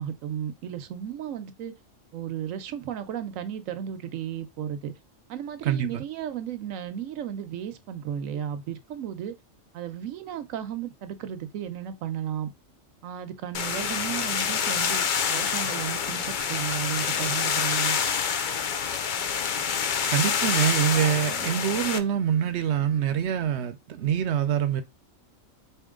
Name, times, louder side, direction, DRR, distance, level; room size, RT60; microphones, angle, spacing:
voice 1, 0.0-1.7 2.1-4.9 5.3-9.3 9.7-12.5 13.0-18.0, right 9 dB, 85° right, 1.1 m, -34 dB
voice 2, 5.6-6.0 20.1-24.8, right 9 dB, 65° right, 0.8 m, -25 dB
sound 1, 13.5-22.0, left 7 dB, 55° left, 0.5 m, -27 dB
sound 2, 16.4-23.1, right 1 dB, 75° left, 2.5 m, -52 dB
4.5 x 2.9 x 3.6 m
omnidirectional pair, 1.3 m